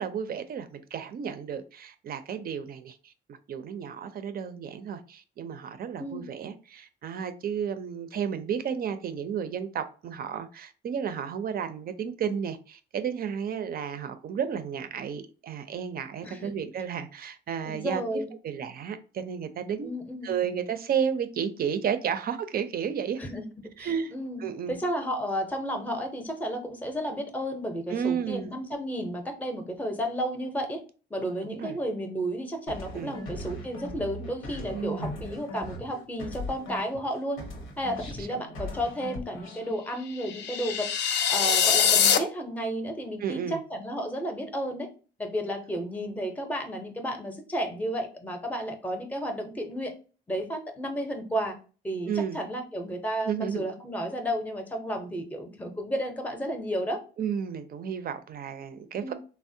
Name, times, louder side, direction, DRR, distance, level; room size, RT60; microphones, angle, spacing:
voice 1, 0.0-3.1 3.5-19.9 20.2-23.2 23.8-24.1 24.4-24.8 27.9-28.5 31.4-31.8 32.9-33.2 34.7-35.2 38.2-38.4 43.2-43.6 52.1-52.4 53.2-53.7 57.2-59.1, right 7 dB, 50° right, 0.4 m, -32 dB
voice 2, 16.2-16.5 17.7-18.3 19.8-20.3 23.2-23.4 23.8-30.8 31.1-37.4 37.8-40.9 41.3-44.9 45.2-49.9 50.3-51.6 51.8-57.0 59.0-59.1, equal, 10° left, 0.6 m, -32 dB
sound 1, 32.7-37.1 37.4-39.7, left 1 dB, 85° left, 0.8 m, -39 dB
sound 2, 40.2-42.2, left 7 dB, 60° left, 0.4 m, -23 dB
3.3 x 2.0 x 2.6 m
cardioid pair, 90°, 20 cm